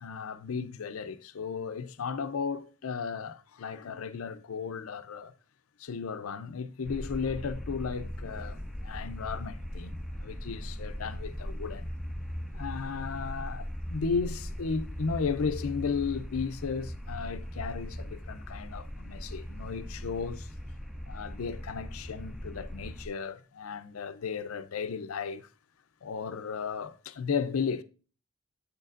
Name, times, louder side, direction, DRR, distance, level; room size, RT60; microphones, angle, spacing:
voice 1, 0.0-5.3 5.8-11.9 12.5-20.5 21.1-25.5 26.0-27.8, left 5 dB, 85° left, 0.5 m, -35 dB
sound 1, 6.8-23.1, equal, ahead, 0.5 m, -39 dB
8.1 x 6.6 x 2.5 m
head